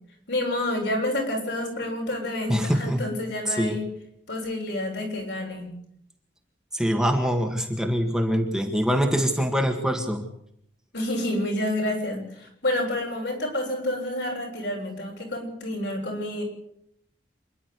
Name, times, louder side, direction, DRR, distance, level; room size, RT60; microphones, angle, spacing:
voice 1, 0.3-3.9 4.3-5.7 10.9-16.4, left 1 dB, 70° left, 0 dB, 7.5 m, -29 dB
voice 2, 2.5-3.0 3.5-3.8 6.7-10.2, equal, 5° right, 2 dB, 1.9 m, -24 dB
27.0 x 11.5 x 8.3 m, 0.71 s
head